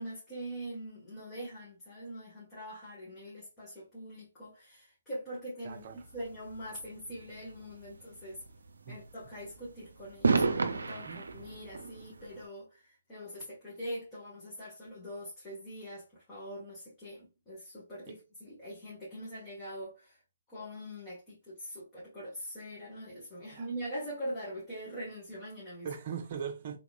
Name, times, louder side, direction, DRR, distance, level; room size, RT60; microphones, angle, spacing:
voice 1, 0.0-8.4 8.9-20.2 20.5-25.9, equal, 20° left, 1.7 m, -43 dB
voice 2, 5.6-6.0 8.8-9.0 11.1-11.2 18.1-18.2 23.5-23.7 25.8-26.8, right 7 dB, 40° right, 0.8 m, -40 dB
sound 1, 5.7-12.4, right 4 dB, 75° right, 0.5 m, -34 dB
3.6 x 3.0 x 2.5 m
figure-of-eight pair, 135°, 0 cm